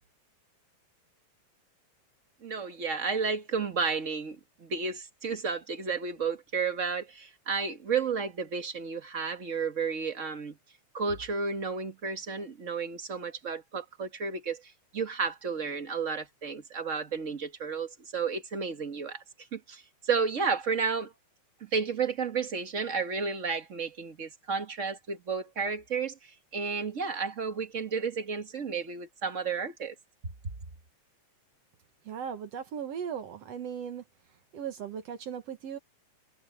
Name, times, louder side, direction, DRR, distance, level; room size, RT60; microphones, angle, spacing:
voice 1, 2.4-10.6 10.9-19.2 19.5-21.1 21.6-29.9, right 5 dB, 35° right, 1.2 m, -32 dB
voice 2, 32.1-34.0 34.5-35.8, right 8 dB, 60° right, 2.3 m, -37 dB
omnidirectional pair, 3.3 m